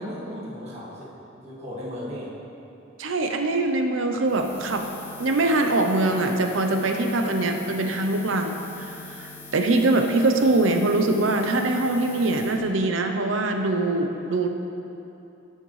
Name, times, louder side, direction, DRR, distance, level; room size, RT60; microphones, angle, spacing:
voice 1, 0.0-2.3, equal, 35° right, -8 dB, 1.6 m, -36 dB
voice 2, 3.0-4.8 5.2-8.6 8.9-14.5, right 2 dB, 75° right, 5 dB, 0.7 m, -23 dB
Buzz, 4.2-12.6, left 4 dB, 35° left, 1.1 m, -43 dB
13.5 x 6.5 x 3.2 m, 2.9 s
head